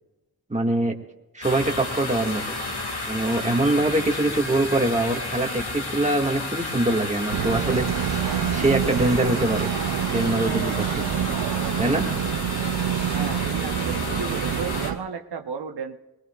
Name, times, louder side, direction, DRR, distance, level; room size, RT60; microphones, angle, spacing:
voice 1, 0.5-1.0 1.3-2.6 3.1-7.8 8.5-9.7 10.1-11.0 11.8-12.1, right 2 dB, 20° right, 1 dB, 1.8 m, -23 dB
sound 1, 1.4-14.9, left 2 dB, 85° left, 2.1 m, -32 dB
sound 2, 7.3-15.0, right 10 dB, 70° right, 0.5 m, -27 dB
voice 2, 13.0-16.0, right 6 dB, 85° right, 5 dB, 0.9 m, -34 dB
22.5 x 19.5 x 2.4 m, 1.0 s
wide cardioid pair, 70°, 38 cm